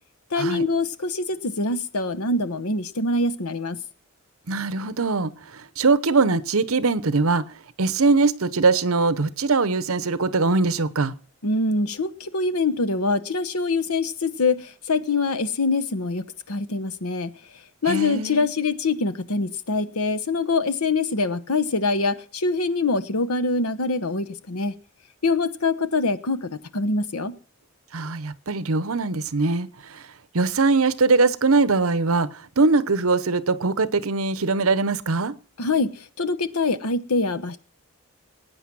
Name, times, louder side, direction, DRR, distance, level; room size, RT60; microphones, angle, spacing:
voice 1, 0.3-3.8 11.4-17.3 17.8-24.7 25.2-27.4 35.6-37.6, left 3 dB, 90° left, 10 dB, 1.1 m, -24 dB
voice 2, 4.5-7.5 7.8-11.1 17.9-18.4 27.9-30.0 30.3-35.3, right 3 dB, 75° right, 16 dB, 0.9 m, -22 dB
19.5 x 9.2 x 6.1 m, 0.41 s
head